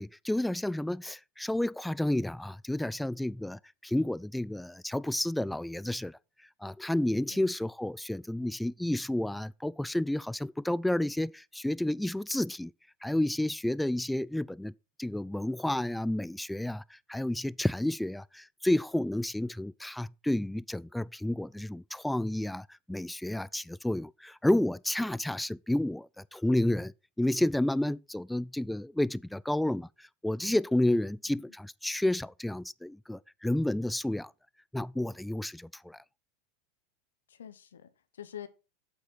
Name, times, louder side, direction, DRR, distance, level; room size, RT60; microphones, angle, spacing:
voice 1, 0.0-6.2 6.6-12.7 13.0-14.7 15.0-34.3 34.7-36.0, left 1 dB, 5° left, 0.4 m, -31 dB
voice 2, 37.3-38.5, left 10 dB, 80° left, 0.9 m, -46 dB
8.0 x 8.0 x 4.2 m
hypercardioid pair, 90°, 0 cm